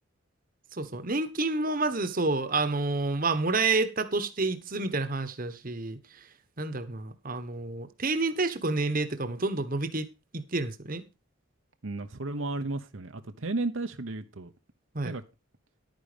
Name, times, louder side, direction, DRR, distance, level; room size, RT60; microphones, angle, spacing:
voice 1, 0.7-6.0 6.6-10.1 10.3-11.0 14.9-15.1, right 3 dB, 45° right, 1.2 m, -29 dB
voice 2, 11.8-14.5 15.0-15.2, right 2 dB, 70° right, 1.0 m, -33 dB
11.5 x 9.4 x 5.1 m
head